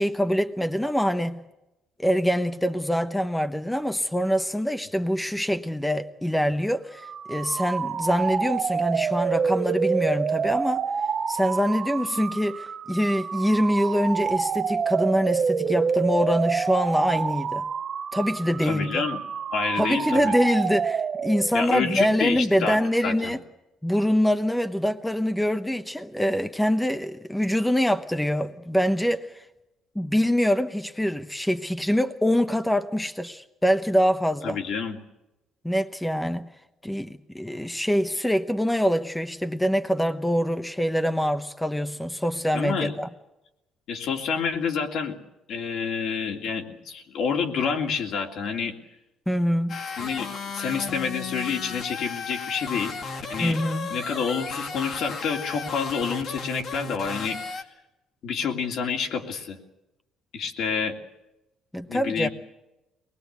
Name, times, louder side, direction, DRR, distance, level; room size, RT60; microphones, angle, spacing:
voice 1, 0.0-1.4 2.0-10.8 11.3-17.6 18.1-19.0 19.8-23.4 23.8-29.5 29.9-34.6 35.6-36.5 36.8-43.1 49.3-49.9 53.4-54.0 61.7-62.3, equal, 5° left, 0.9 m, -24 dB
sound 1, 7.0-21.7, right 6 dB, 40° right, 0.8 m, -27 dB
voice 2, 18.6-19.2 19.5-20.3 21.5-23.3 34.4-35.0 42.5-42.9 43.9-45.2 45.5-48.7 50.0-53.0 53.3-53.6 53.9-57.6 58.2-59.6 60.3-60.9 61.9-62.3, left 6 dB, 65° left, 2.9 m, -28 dB
sound 2, 49.7-57.6, left 4 dB, 50° left, 2.2 m, -34 dB
23.0 x 20.0 x 8.3 m
cardioid pair, 115°, 0 cm